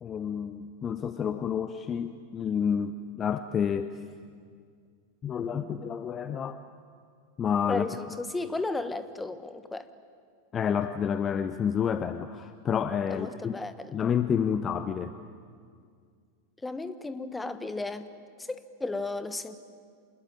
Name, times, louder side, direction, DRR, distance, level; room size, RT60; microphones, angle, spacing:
voice 1, 0.0-3.9 5.2-6.6 7.4-7.9 10.5-13.5 13.9-15.1, left 7 dB, 25° left, 11 dB, 0.8 m, -29 dB
voice 2, 7.7-9.9 13.1-14.0 16.6-18.1 18.4-19.6, left 2 dB, 10° left, 12 dB, 1.3 m, -34 dB
27.0 x 20.5 x 9.0 m, 2.1 s
figure-of-eight pair, 90°, 0 cm